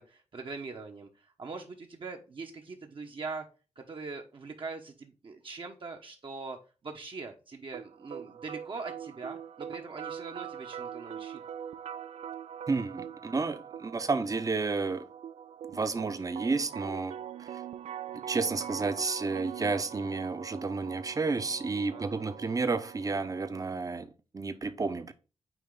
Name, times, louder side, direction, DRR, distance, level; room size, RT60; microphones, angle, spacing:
voice 1, 0.0-3.5 3.8-11.4 21.9-22.4, right 4 dB, 50° right, 1.1 m, -42 dB
sound 1, 7.7-23.7, right 9 dB, 80° right, 0.4 m, -43 dB
voice 2, 12.7-15.1 15.7-17.6 18.3-25.1, right 4 dB, 30° right, 0.8 m, -31 dB
9.2 x 3.2 x 3.9 m
wide cardioid pair, 100°, 11 cm